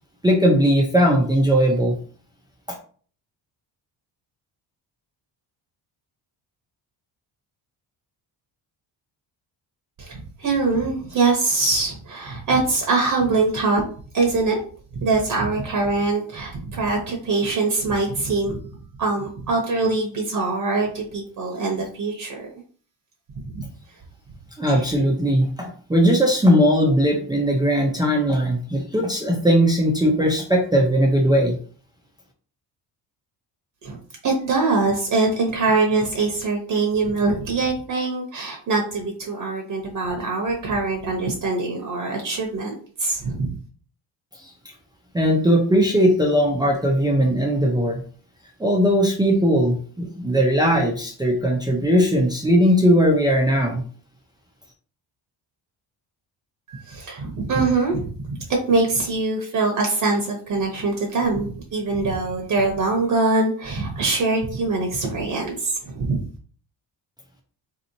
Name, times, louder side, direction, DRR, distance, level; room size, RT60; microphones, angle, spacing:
voice 1, 0.2-1.9 24.6-31.6 45.1-48.0 48.6-53.8, equal, 10° right, -1 dB, 0.6 m, -19 dB
voice 2, 10.0-13.8 14.1-14.6 14.9-18.6 19.0-22.5 23.4-23.6 24.7-24.9 33.8-34.0 34.2-43.6 56.7-58.4 58.7-66.2, right 3 dB, 45° right, 1 dB, 1.0 m, -23 dB
4.1 x 2.9 x 2.7 m, 0.43 s
cardioid pair, 135°, 42 cm